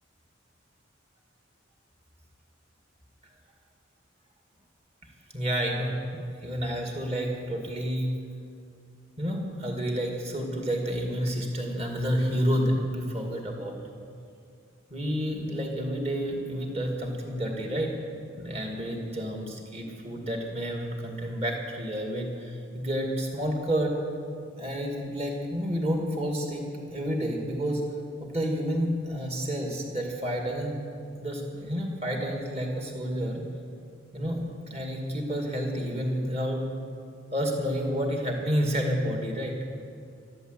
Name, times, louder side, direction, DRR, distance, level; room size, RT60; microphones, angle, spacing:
voice 1, 5.3-8.1 9.2-13.7 14.9-17.9 18.4-23.9 24.6-26.6 26.9-27.8 28.2-30.8 31.2-33.4 34.1-36.7 37.3-39.5, equal, 30° right, 1 dB, 2.3 m, -30 dB
13.5 x 12.0 x 8.1 m, 2.3 s
head